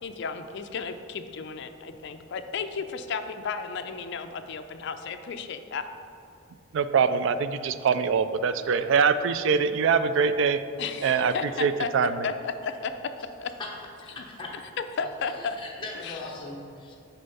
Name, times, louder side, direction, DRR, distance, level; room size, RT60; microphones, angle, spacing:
voice 1, 0.0-5.8 10.8-11.9 12.2-12.9 13.4-13.5 14.1-14.2 15.0-15.6 16.0-16.2, left 5 dB, 55° left, 8 dB, 0.4 m, -33 dB
voice 2, 6.7-10.6 11.0-12.3, right 6 dB, 60° right, 12 dB, 0.3 m, -23 dB
voice 3, 14.0-14.5 15.0-17.0, left 2 dB, 25° left, -3 dB, 0.9 m, -39 dB
6.8 x 4.4 x 5.4 m, 2.5 s
head